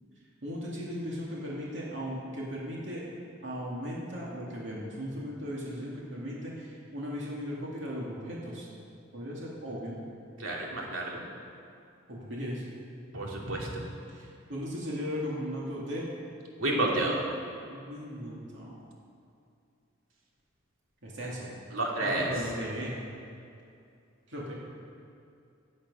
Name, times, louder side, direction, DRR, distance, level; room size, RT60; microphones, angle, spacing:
voice 1, 0.4-3.0 3.4-8.7 9.1-10.0 12.1-12.6 14.1-16.1 16.8-17.1 17.7-18.8 21.0-21.5 22.0-22.9 24.3-24.6, equal, 65° right, -5 dB, 2.5 m, -37 dB
voice 2, 10.4-11.2 13.1-13.8 16.6-17.2 21.7-22.3, right 2 dB, 90° right, -2 dB, 2.6 m, -30 dB
16.5 x 8.8 x 5.5 m, 2.5 s
head